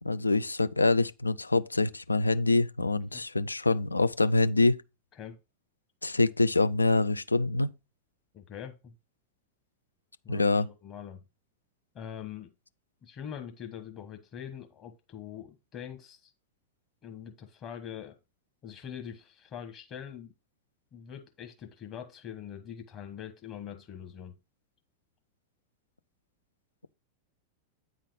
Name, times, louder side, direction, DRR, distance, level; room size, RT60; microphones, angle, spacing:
voice 1, 0.0-4.8 6.0-7.7 10.3-10.7, left 3 dB, 80° left, 0.4 m, -25 dB
voice 2, 8.3-8.9 10.2-11.2 11.9-12.5 13.0-16.3 17.0-18.1 18.6-20.3 20.9-24.4, left 9 dB, 30° left, 1.2 m, -43 dB
8.9 x 4.1 x 4.8 m
figure-of-eight pair, 90°, 0 cm